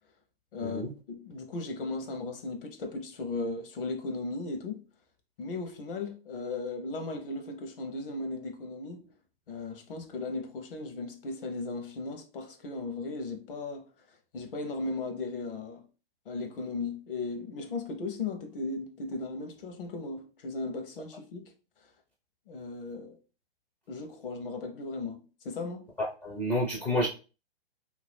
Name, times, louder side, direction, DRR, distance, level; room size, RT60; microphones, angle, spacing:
voice 1, 0.5-4.8 5.4-9.1 9.5-13.9 14.3-15.9 16.3-21.5 22.5-23.2 23.9-25.9, left 3 dB, 60° left, 0.8 m, -36 dB
voice 2, 26.0-27.1, equal, 10° left, 0.4 m, -29 dB
2.6 x 2.3 x 3.4 m
figure-of-eight pair, 120°, 30 cm